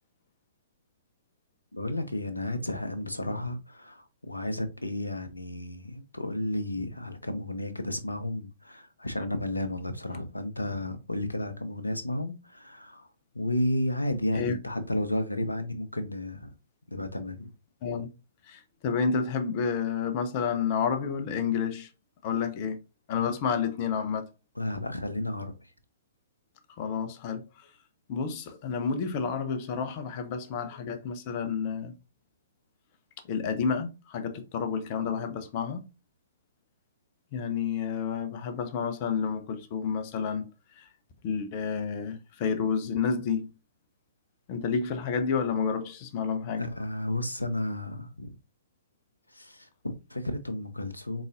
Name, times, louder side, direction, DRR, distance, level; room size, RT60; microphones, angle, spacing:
voice 1, 1.7-13.1 13.3-16.5 16.9-17.5 23.1-23.3 24.6-25.5 46.6-48.4 49.3-51.2, left 1 dB, 80° left, 0.7 m, -32 dB
voice 2, 18.5-21.9 22.2-22.8 23.1-24.3 26.8-27.5 28.1-31.9 33.3-35.9 37.3-40.5 40.8-40.9 41.2-43.5 44.5-46.6, left 6 dB, 35° left, 0.7 m, -30 dB
3.9 x 3.8 x 2.5 m
figure-of-eight pair, 120°, 0 cm